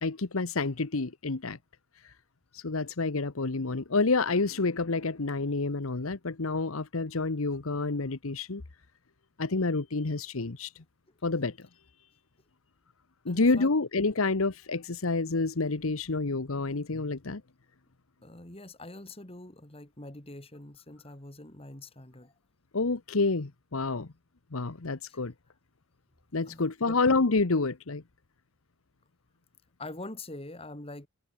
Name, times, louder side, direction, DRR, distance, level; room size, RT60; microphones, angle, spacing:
voice 1, 0.0-1.6 2.5-8.6 9.4-10.7 11.2-11.7 13.2-17.4 22.7-24.1 24.5-25.3 26.3-28.0, left 3 dB, 80° left, 1.1 m, -28 dB
voice 2, 13.3-13.7 18.2-22.3 25.1-25.2 26.5-27.0 29.8-31.1, left 2 dB, 25° left, 3.0 m, -44 dB
head